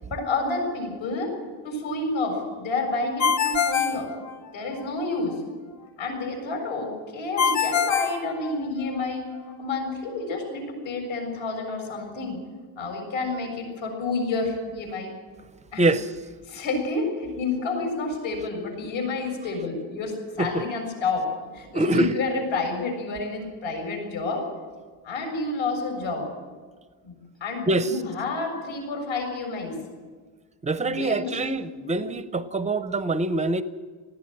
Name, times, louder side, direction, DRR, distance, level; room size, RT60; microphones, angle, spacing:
voice 1, 0.1-1.3 1.6-4.1 4.5-5.4 6.0-9.3 9.6-12.4 12.8-15.1 15.7-15.8 16.5-24.5 25.0-26.3 27.0-27.1 27.4-29.8 30.8-31.4, left 3 dB, 75° left, 7.1 m, -29 dB
Ringtone, 3.2-4.8 7.4-9.0, left 7 dB, 40° left, 0.8 m, -24 dB
voice 2, 15.8-16.1 20.4-20.6 21.7-22.2 27.7-27.9 30.6-33.6, right 2 dB, 15° right, 0.5 m, -24 dB
20.0 x 15.0 x 9.0 m
cardioid pair, 170°, 46 cm